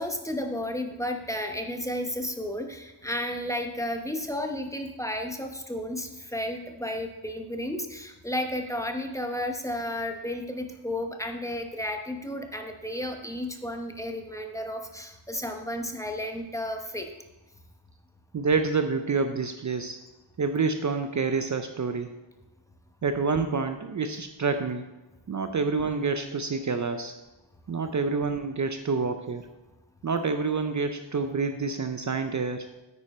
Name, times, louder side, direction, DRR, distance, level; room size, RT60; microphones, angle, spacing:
voice 1, 0.0-17.1, left 1 dB, 5° left, 4 dB, 0.9 m, -32 dB
voice 2, 18.3-20.0 20.4-22.2 23.0-24.9 25.3-27.2 27.7-29.5 30.0-32.7, right 4 dB, 40° right, 8 dB, 0.6 m, -28 dB
9.9 x 9.0 x 4.2 m, 1.1 s
wide cardioid pair, 155°, 47 cm